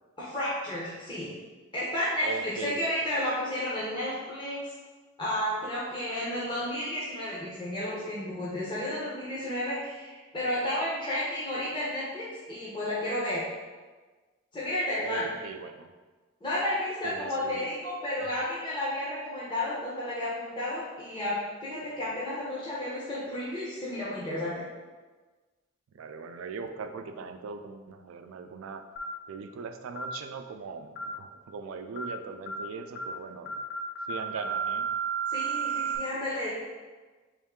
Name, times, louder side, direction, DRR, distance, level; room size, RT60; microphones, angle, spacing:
voice 1, 0.2-1.3 1.7-4.6 5.2-13.5 14.5-15.2 16.4-21.4 21.6-24.5 35.3-36.5, left 1 dB, 25° left, -8 dB, 0.7 m, -32 dB
voice 2, 2.2-2.8 15.0-15.9 17.0-17.7 18.2-18.3 25.9-28.8 29.3-33.5 34.1-34.9, right 5 dB, 85° right, 8 dB, 0.3 m, -40 dB
sound 1, 29.0-29.2 30.0-30.2 31.0-31.2 32.0-32.2 32.5-32.7 33.0-33.2 33.5-36.0, right 5 dB, 55° left, 0.5 m, -32 dB
3.6 x 3.1 x 3.6 m, 1.3 s
head